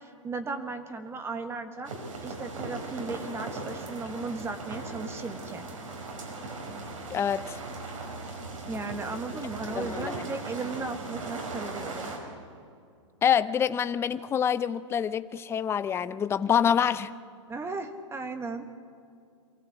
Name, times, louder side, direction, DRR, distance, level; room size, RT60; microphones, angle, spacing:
voice 1, 0.0-1.9 2.2-5.7 8.7-12.1 17.5-18.6, right 3 dB, 15° right, 7 dB, 1.3 m, -36 dB
sound 1, 1.8-12.2, right 2 dB, 85° right, 5.4 m, -38 dB
voice 2, 7.1-7.6 9.8-10.3 13.2-17.1, left 8 dB, 15° left, 14 dB, 0.5 m, -26 dB
23.5 x 15.5 x 8.4 m, 2.3 s
hypercardioid pair, 120°, 16 cm